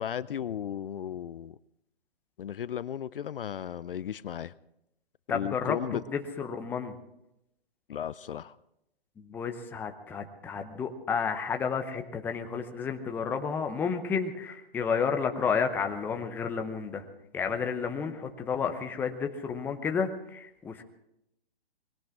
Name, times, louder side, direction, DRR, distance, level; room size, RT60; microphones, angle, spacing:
voice 1, 0.0-1.6 2.4-4.5 5.3-6.0 7.9-8.6, left 9 dB, 60° left, 18 dB, 0.5 m, -35 dB
voice 2, 5.3-6.9 9.2-17.0 17.3-20.8, left 6 dB, 5° left, 5 dB, 0.7 m, -31 dB
20.5 x 17.0 x 3.7 m, 0.84 s
hypercardioid pair, 140°, 30 cm